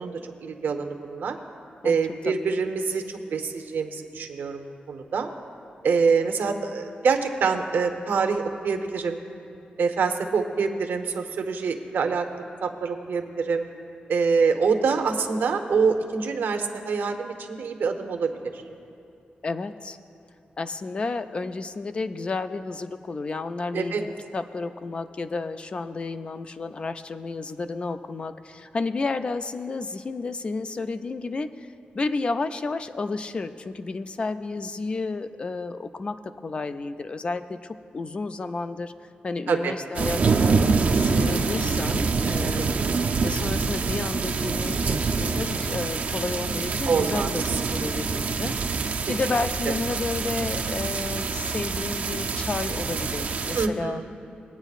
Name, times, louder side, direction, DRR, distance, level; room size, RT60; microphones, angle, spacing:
voice 1, 0.0-1.4 1.8-5.3 5.8-9.2 9.8-13.7 14.1-18.6 23.7-24.0 39.5-39.7 42.5-43.0 46.9-47.3 53.5-54.1, right 5 dB, 90° right, 5 dB, 0.8 m, -25 dB
voice 2, 19.4-20.0 20.6-38.9 39.2-40.7 40.9-42.8 43.2-54.0, left 3 dB, 35° left, 10 dB, 0.3 m, -31 dB
sound 1, 39.9-53.7, right 4 dB, 50° right, 0.5 m, -26 dB
21.0 x 8.9 x 2.4 m, 2.6 s
wide cardioid pair, 170°, 3 cm